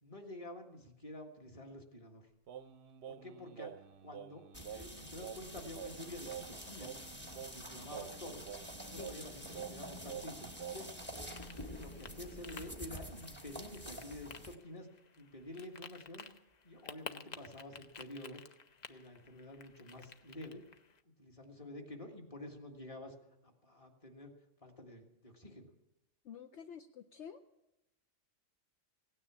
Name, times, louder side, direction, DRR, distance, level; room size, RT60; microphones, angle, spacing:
voice 1, 0.0-2.3 3.1-3.7 4.0-4.4 4.7-7.0 7.3-8.5 8.8-10.9 11.5-14.9 15.2-16.3 16.6-18.4 18.9-20.6 21.1-23.1 23.4-24.3 24.6-25.7, left 1 dB, 25° left, 2 dB, 1.8 m, -49 dB
Singing, 2.5-11.1, right 9 dB, 60° right, 0.8 m, -49 dB
sound 1, 4.5-14.5, equal, 10° left, 1.0 m, -48 dB
sound 2, 11.2-21.0, left 5 dB, 45° left, 0.6 m, -53 dB
voice 2, 26.2-27.4, left 8 dB, 65° left, 6 dB, 0.9 m, -49 dB
17.0 x 9.7 x 7.3 m, 0.91 s
omnidirectional pair, 1.4 m